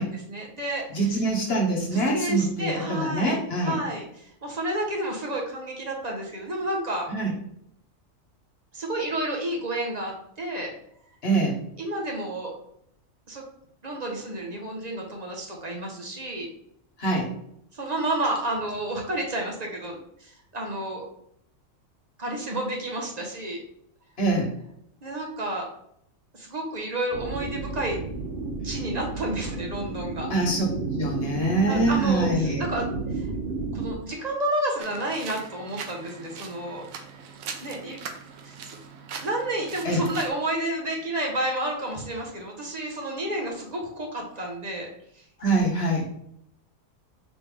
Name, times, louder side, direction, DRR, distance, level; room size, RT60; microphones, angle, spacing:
voice 1, 0.0-1.2 1.9-7.1 8.7-10.7 11.8-12.5 13.3-13.4 13.8-16.5 17.7-21.0 22.2-23.6 25.0-25.7 26.3-28.0 28.6-30.3 31.7-33.3 33.7-36.8 37.6-38.0 38.4-38.5 39.2-44.9 45.1-45.2, right 1 dB, 35° right, 0 dB, 0.9 m, -30 dB
voice 2, 0.9-3.8 7.1-7.3 11.2-11.6 17.0-17.3 24.2-24.5 30.3-30.6 31.0-32.6 39.8-40.0 45.4-46.1, right 2 dB, 50° left, -1 dB, 1.2 m, -24 dB
sound 1, 27.1-33.9, right 3 dB, 60° right, 0.6 m, -32 dB
sound 2, 34.8-40.3, right 6 dB, 80° right, 1.0 m, -40 dB
4.2 x 3.2 x 3.3 m, 0.71 s
omnidirectional pair, 1.4 m